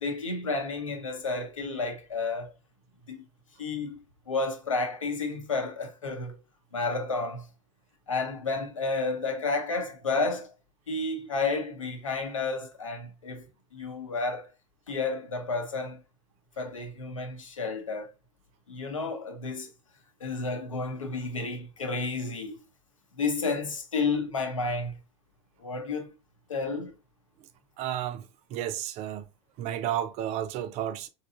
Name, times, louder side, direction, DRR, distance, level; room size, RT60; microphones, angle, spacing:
voice 1, 0.0-2.5 3.1-3.2 3.6-4.0 4.3-6.4 6.7-7.5 8.1-10.5 10.9-13.4 13.7-14.5 14.9-16.0 16.6-18.1 18.7-19.7 20.2-22.6 23.2-24.9 25.6-26.1 26.5-26.9, left 3 dB, 90° left, 0.8 m, -31 dB
voice 2, 27.8-29.3 29.6-31.1, right 11 dB, 40° right, 0.5 m, -32 dB
3.9 x 2.8 x 2.4 m
hypercardioid pair, 95°, 16 cm